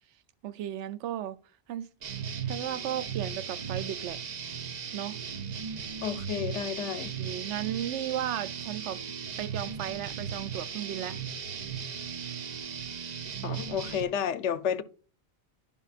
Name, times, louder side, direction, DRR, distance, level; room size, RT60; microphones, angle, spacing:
voice 1, 0.4-1.4 1.7-1.9 2.5-4.2 4.9-5.2 7.2-9.0 9.4-11.2, right 11 dB, 90° right, 0.9 m, -35 dB
sound 1, 2.0-14.0, right 7 dB, 45° right, 0.6 m, -37 dB
voice 2, 6.0-7.1 13.4-14.8, left 8 dB, 90° left, 1.0 m, -31 dB
10.5 x 5.5 x 2.4 m
omnidirectional pair, 1.2 m